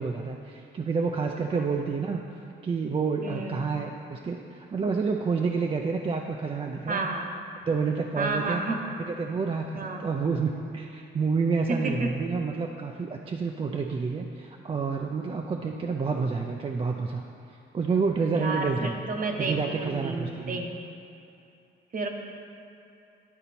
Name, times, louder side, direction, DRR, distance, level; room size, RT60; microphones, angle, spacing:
voice 1, 0.0-2.2 2.6-7.1 7.7-8.6 9.1-17.2 17.5-18.9 19.4-20.6, right 5 dB, 30° right, 2 dB, 0.4 m, -29 dB
voice 2, 3.2-3.6 6.9-7.4 8.2-8.8 9.7-10.0 11.7-12.1 18.3-20.7 21.9-22.1, right 3 dB, 45° right, 3 dB, 0.9 m, -31 dB
11.0 x 4.0 x 4.2 m, 2.7 s
cardioid pair, 90°, 20 cm